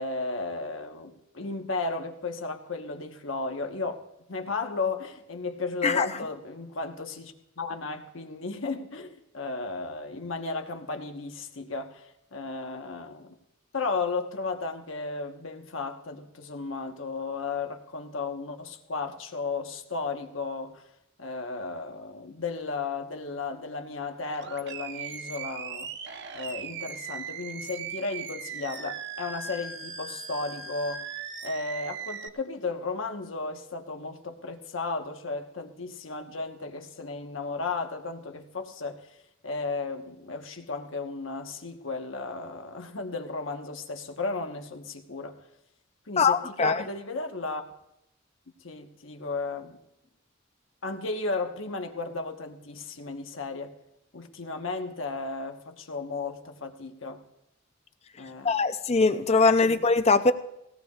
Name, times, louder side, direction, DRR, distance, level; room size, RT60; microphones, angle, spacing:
voice 1, 0.0-4.0 4.3-13.3 13.7-20.8 21.2-25.9 26.3-31.0 31.4-39.1 39.4-45.4 46.1-47.6 48.6-49.8 50.8-53.7 54.1-57.2 58.2-58.6 59.7-59.8, left 3 dB, 70° left, 5 dB, 1.2 m, -34 dB
Animal, 24.3-32.3, right 6 dB, 60° right, 0.9 m, -39 dB
voice 2, 46.2-46.8 58.4-60.3, left 4 dB, 30° left, 11 dB, 0.6 m, -22 dB
20.0 x 17.0 x 2.4 m, 0.85 s
head